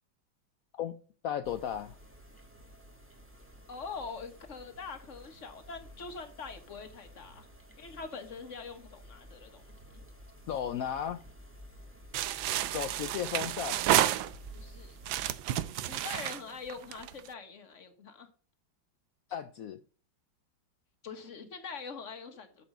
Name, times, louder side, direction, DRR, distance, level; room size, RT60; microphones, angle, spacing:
voice 1, 0.7-1.9 10.5-11.2 12.7-13.8 19.3-19.8, left 9 dB, 85° left, 0.7 m, -35 dB
sound 1, 1.4-15.4, equal, 5° right, 1.4 m, -53 dB
voice 2, 3.7-7.5 7.8-9.7 14.5-15.0 15.9-18.3 21.0-22.6, left 5 dB, 40° left, 1.6 m, -43 dB
sound 2, 12.1-14.6 15.0-17.3, right 13 dB, 85° right, 1.4 m, -30 dB
8.7 x 7.1 x 5.1 m
omnidirectional pair, 2.1 m